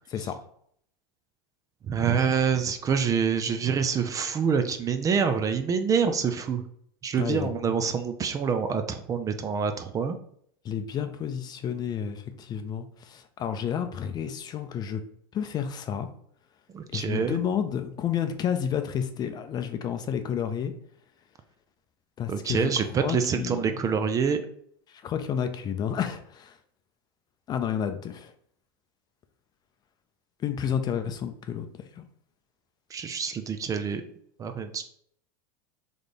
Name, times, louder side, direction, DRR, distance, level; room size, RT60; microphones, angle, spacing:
voice 1, 0.1-0.4 7.2-7.5 10.6-15.0 15.3-16.1 16.9-20.7 22.2-22.7 23.0-23.8 24.9-26.6 27.5-28.3 30.4-31.7 32.0-32.1, left 8 dB, 30° left, 8 dB, 0.5 m, -30 dB
voice 2, 1.9-6.6 7.0-10.2 16.7-17.4 22.3-24.4 32.9-34.0 34.4-34.8, right 6 dB, 25° right, 8 dB, 0.5 m, -26 dB
3.4 x 3.3 x 4.0 m, 0.65 s
supercardioid pair, 110°, 13 cm